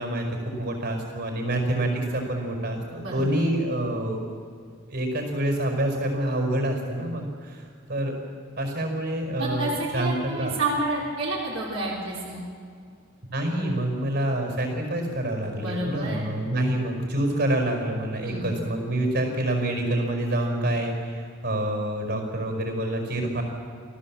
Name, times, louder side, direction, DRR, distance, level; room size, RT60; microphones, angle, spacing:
voice 1, 0.0-4.2 4.9-7.6 7.9-8.1 8.6-10.5 13.3-23.4, right 1 dB, 55° right, 3 dB, 5.2 m, -27 dB
voice 2, 9.4-12.4 15.5-16.2 18.2-18.5, right 2 dB, 75° right, -6 dB, 4.1 m, -29 dB
28.5 x 15.0 x 7.6 m, 2.1 s
head